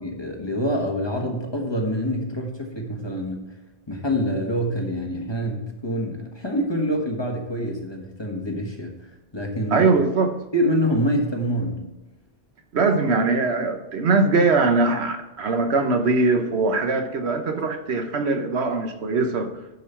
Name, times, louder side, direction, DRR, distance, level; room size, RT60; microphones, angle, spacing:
voice 1, 0.0-3.4 3.9-9.9 10.5-11.9, equal, 25° left, 1 dB, 1.3 m, -26 dB
voice 2, 9.7-10.4 12.7-19.5, right 3 dB, 75° right, 6 dB, 1.2 m, -21 dB
10.5 x 5.4 x 4.5 m, 1.0 s
omnidirectional pair, 1.1 m